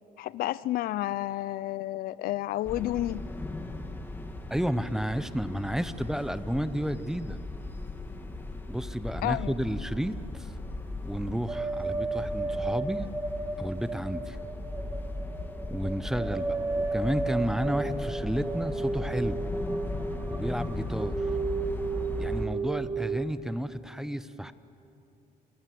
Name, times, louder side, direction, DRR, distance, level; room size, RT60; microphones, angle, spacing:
voice 1, 0.2-3.3 9.2-9.5, left 15 dB, 75° left, 0.5 m, -30 dB
sound 1, 2.6-22.5, left 2 dB, 15° left, 1.8 m, -37 dB
voice 2, 4.5-7.4 8.7-10.5 11.0-13.1 13.6-14.4 15.7-19.4 20.3-21.3 22.2-24.5, equal, 5° right, 0.7 m, -32 dB
sound 2, 11.5-23.3, right 3 dB, 20° right, 1.8 m, -33 dB
27.5 x 20.0 x 7.7 m
cardioid pair, 120°, 15 cm